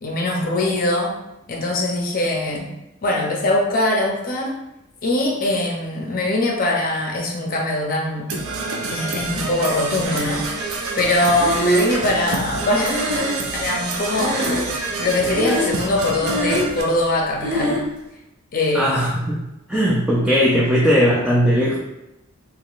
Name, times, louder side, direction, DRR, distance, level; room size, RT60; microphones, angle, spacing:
voice 1, 0.0-1.2 1.5-2.7 3.0-4.6 5.0-8.3 8.9-10.5 10.9-13.2 13.5-14.6 15.0-17.8 18.5-19.2, left 2 dB, 45° left, 0 dB, 0.6 m, -22 dB
Percussion / Brass instrument, 8.3-16.8, right 3 dB, 80° right, 0.5 m, -28 dB
Breathing, 10.1-10.8 11.4-13.8 14.1-14.9 15.3-15.9 16.1-16.8 17.4-17.9, equal, 60° right, 1.2 m, -24 dB
voice 2, 18.7-19.4 19.7-21.8, equal, 5° right, -7 dB, 0.4 m, -18 dB
3.6 x 2.9 x 2.4 m, 0.89 s
head